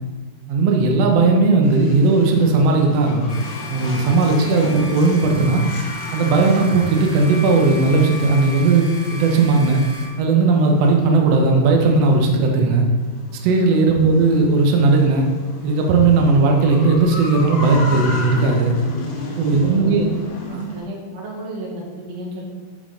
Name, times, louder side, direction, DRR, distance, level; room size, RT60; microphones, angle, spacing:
voice 1, 0.5-3.3 3.7-5.6 6.1-9.8 10.2-12.9 13.4-15.3 15.6-18.7 19.4-20.2 20.5-20.7, right 3 dB, 85° right, 1 dB, 1.4 m, -16 dB
sound 1, 1.6-20.8, left 2 dB, 65° left, 1.8 m, -34 dB
sound 2, 3.3-10.1, left 1 dB, 80° left, 0.9 m, -35 dB
voice 2, 19.6-20.1 20.7-22.4, right 1 dB, 65° right, -3 dB, 3.2 m, -33 dB
8.8 x 5.4 x 3.8 m, 1.3 s
omnidirectional pair, 4.2 m